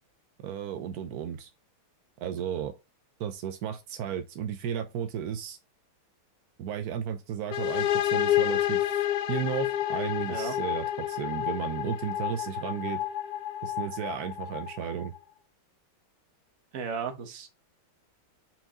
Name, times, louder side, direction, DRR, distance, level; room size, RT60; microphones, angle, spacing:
voice 1, 0.4-1.5 2.2-2.7 3.2-5.6 6.6-8.9 9.3-13.0 13.6-15.1, right 8 dB, 75° right, 0.9 m, -34 dB
sound 1, 7.5-15.2, left 12 dB, 80° left, 0.8 m, -29 dB
voice 2, 16.7-17.5, right 6 dB, 50° right, 1.2 m, -35 dB
5.9 x 4.6 x 3.7 m
omnidirectional pair, 2.4 m